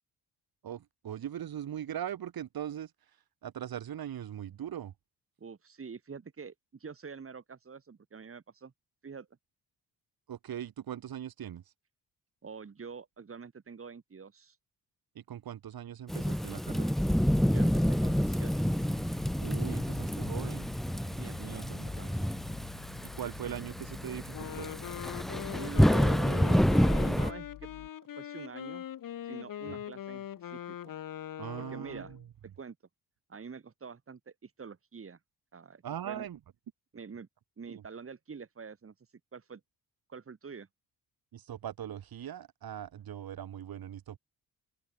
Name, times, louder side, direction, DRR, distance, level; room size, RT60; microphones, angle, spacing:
voice 1, 0.6-2.9 3.4-4.9 10.3-11.6 15.2-17.0 19.4-20.7 21.4-21.9 23.0-24.7 29.7-29.8 31.4-32.2 35.8-36.4 37.7-37.8 41.3-44.2, right 10 dB, 70° right, 5.8 m, -40 dB
voice 2, 5.4-8.7 9.0-9.3 12.4-14.6 17.5-18.7 21.2-22.1 25.6-26.7 27.1-27.7 28.2-28.8 29.2-30.8 31.6-32.1 32.6-32.8 33.3-35.2 35.5-36.3 36.9-37.3 37.6-38.9 39.3-39.6 40.1-40.7, right 5 dB, 35° right, 3.8 m, -46 dB
Thunderstorm / Rain, 16.1-27.3, equal, ahead, 0.8 m, -28 dB
sound 1, 21.2-27.9, left 12 dB, 85° left, 6.1 m, -50 dB
Wind instrument woodwind instrument, 24.3-32.2, left 11 dB, 60° left, 1.4 m, -41 dB
open air
cardioid pair, 100°, 37 cm